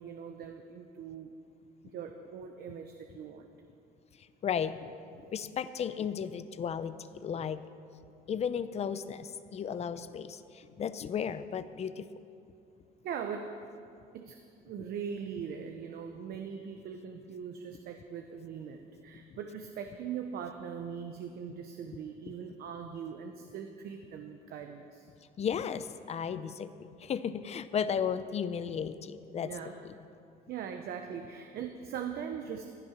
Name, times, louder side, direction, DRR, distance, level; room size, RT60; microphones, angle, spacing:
voice 1, 0.0-1.3 1.8-3.5 13.0-13.9 14.1-25.1 29.4-29.7 30.5-32.6, right 7 dB, 65° right, 5 dB, 0.9 m, -41 dB
voice 2, 4.4-7.6 8.3-12.1 25.4-29.5 29.8-29.9, left 7 dB, 40° left, 13 dB, 0.6 m, -34 dB
15.0 x 10.5 x 5.9 m, 2.5 s
cardioid pair, 110°, 17 cm